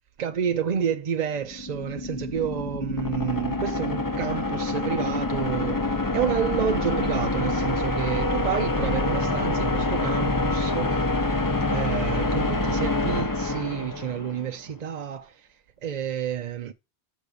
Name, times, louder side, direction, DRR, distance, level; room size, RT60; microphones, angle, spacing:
voice 1, 0.2-11.0 11.7-16.7, right 8 dB, 50° right, 0.5 m, -30 dB
sound 1, 1.4-14.5, left 2 dB, 20° left, 0.7 m, -26 dB
6.1 x 5.2 x 6.6 m
omnidirectional pair, 1.1 m